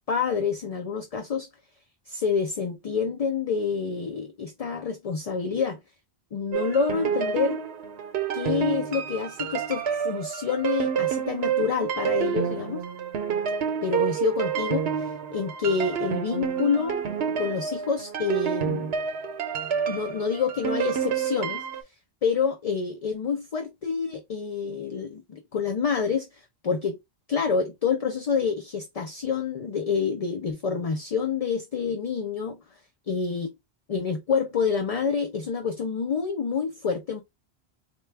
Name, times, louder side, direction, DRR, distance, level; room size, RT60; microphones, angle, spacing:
voice 1, 0.1-1.5 2.1-5.8 6.3-7.6 8.3-12.9 13.8-17.0 17.4-18.9 19.9-21.6 22.2-27.0 27.3-32.6 33.1-33.5 33.9-37.2, left 5 dB, 50° left, 0.5 m, -27 dB
sound 1, 6.5-21.8, right 8 dB, 75° right, 0.9 m, -29 dB
4.3 x 2.2 x 3.2 m
omnidirectional pair, 1.1 m